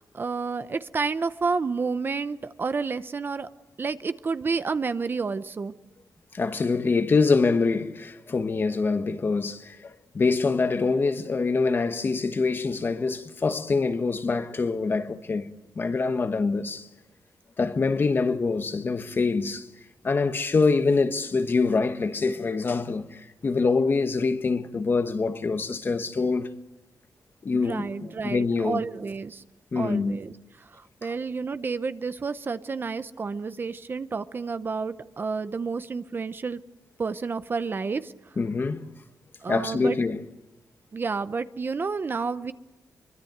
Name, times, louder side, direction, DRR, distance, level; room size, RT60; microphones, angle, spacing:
voice 1, 0.0-3.5 3.8-5.7 27.5-29.4 29.8-30.3 30.6-36.6 37.0-38.1 39.4-40.0 40.9-42.5, right 4 dB, 35° right, 0.8 m, -30 dB
voice 2, 6.3-16.9 17.6-19.7 20.0-26.5 27.4-28.8 29.7-30.2 38.4-38.9 39.5-40.2, left 4 dB, 35° left, 1.2 m, -25 dB
25.0 x 24.0 x 8.0 m
wide cardioid pair, 145°, 6 cm